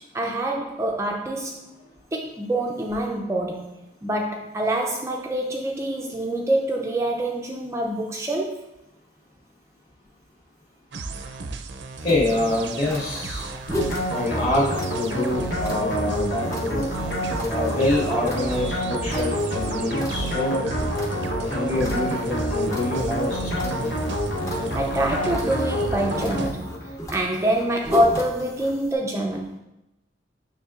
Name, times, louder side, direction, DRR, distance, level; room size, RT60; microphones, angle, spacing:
voice 1, 0.1-1.6 2.1-3.7 4.0-8.6 24.7-26.7 27.1-29.6, right 1 dB, 15° right, 0 dB, 0.4 m, -25 dB
sound 1, 10.9-26.5, right 3 dB, 70° right, 0.5 m, -35 dB
voice 2, 12.0-13.5 14.1-16.9 17.5-20.6 21.5-23.8, left 1 dB, 40° left, -5 dB, 2.2 m, -26 dB
sound 2, 12.1-28.9, equal, 15° left, 0.7 m, -37 dB
sound 3, 13.7-27.0, equal, 60° left, 1.1 m, -28 dB
6.9 x 6.0 x 2.5 m, 0.91 s
head